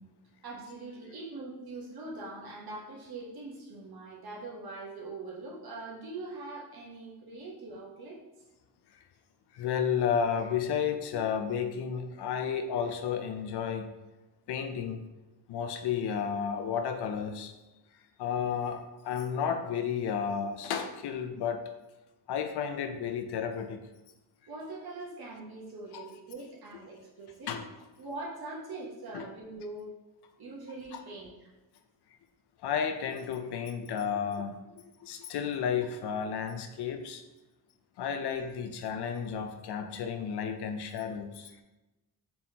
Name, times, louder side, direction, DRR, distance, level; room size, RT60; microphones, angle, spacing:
voice 1, 0.4-8.2 24.5-27.5 28.0-29.9 30.4-31.5, right 2 dB, 70° right, -3 dB, 1.1 m, -42 dB
voice 2, 9.5-13.9 14.5-15.1 15.5-17.5 17.9-21.7 22.3-23.8 25.9-26.0 27.5-27.6 29.1-29.2 30.9-31.0 32.6-37.2 38.0-41.6, left 7 dB, 90° left, 6 dB, 0.5 m, -32 dB
4.2 x 3.6 x 2.8 m, 1.1 s
cardioid pair, 70°, 38 cm